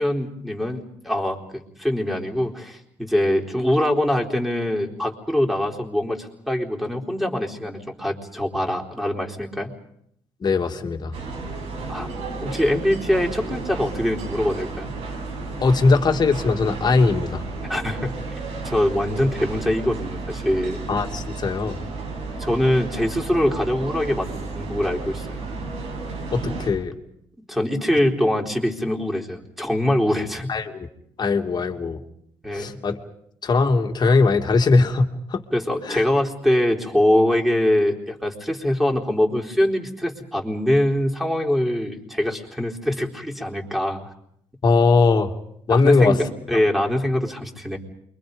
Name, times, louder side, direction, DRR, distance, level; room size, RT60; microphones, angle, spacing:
voice 1, 0.0-9.7 11.9-12.1 12.4-14.9 17.7-18.1 18.6-20.8 22.4-25.5 27.5-30.5 32.4-32.7 35.5-44.1 45.7-47.8, left 1 dB, ahead, 1 dB, 4.0 m, -23 dB
voice 2, 10.4-11.1 15.6-17.4 20.9-21.9 26.3-26.9 30.5-30.9 31.2-32.0 32.5-33.0 33.4-35.4 35.8-36.0 44.6-45.3 45.7-46.2, left 4 dB, 40° left, 4 dB, 2.6 m, -20 dB
sound 1, 11.1-26.7, right 3 dB, 85° right, 6.7 m, -32 dB
28.5 x 24.0 x 5.4 m, 0.73 s
supercardioid pair, 80°, 11 cm